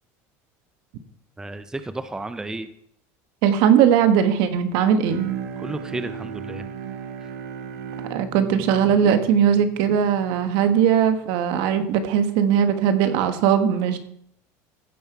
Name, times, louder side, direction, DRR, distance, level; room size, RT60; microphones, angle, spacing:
voice 1, 1.4-2.7 5.6-6.6, right 2 dB, 10° right, 11 dB, 0.6 m, -32 dB
voice 2, 3.4-5.2 8.1-14.0, right 8 dB, 70° right, 9 dB, 1.3 m, -19 dB
Bowed string instrument, 5.1-10.5, right 8 dB, 90° right, 1.4 m, -35 dB
15.0 x 5.6 x 4.7 m, 0.72 s
supercardioid pair, 125°, 8 cm